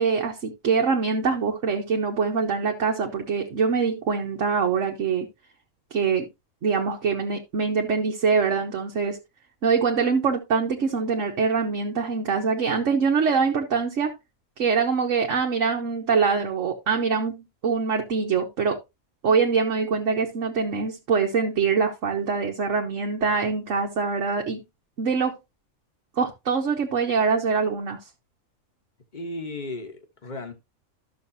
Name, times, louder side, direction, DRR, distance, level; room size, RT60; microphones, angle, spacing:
voice 1, 0.0-5.3 5.9-6.3 6.6-9.2 9.6-14.1 14.6-18.8 19.2-24.6 25.0-25.3 26.2-28.0, right 5 dB, 60° right, 1.4 m, -24 dB
voice 2, 29.1-30.5, left 2 dB, 35° left, 1.4 m, -35 dB
12.5 x 6.4 x 2.7 m
omnidirectional pair, 1.4 m